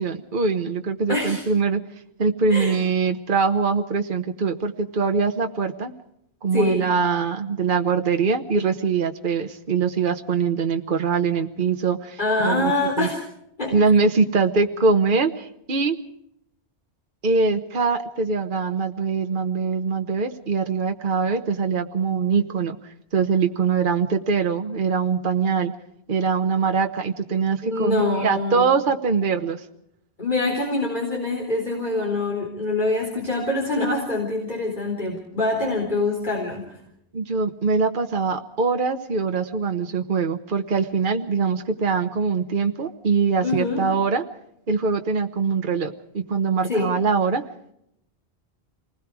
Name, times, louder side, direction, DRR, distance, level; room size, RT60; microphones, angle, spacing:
voice 1, 0.0-1.8 2.2-5.9 6.4-12.7 13.0-13.1 13.7-16.0 17.2-22.8 23.1-25.7 26.1-29.6 35.6-35.7 37.1-44.2 44.7-47.4, right 5 dB, 50° right, 5 dB, 1.3 m, -23 dB
voice 2, 1.1-1.4 2.5-2.8 6.5-6.8 12.2-13.2 13.6-13.7 27.6-28.7 30.2-36.6 43.4-43.8 46.7-46.8, left 2 dB, 45° left, -1 dB, 4.3 m, -24 dB
27.5 x 20.0 x 4.8 m, 0.76 s
omnidirectional pair, 1.1 m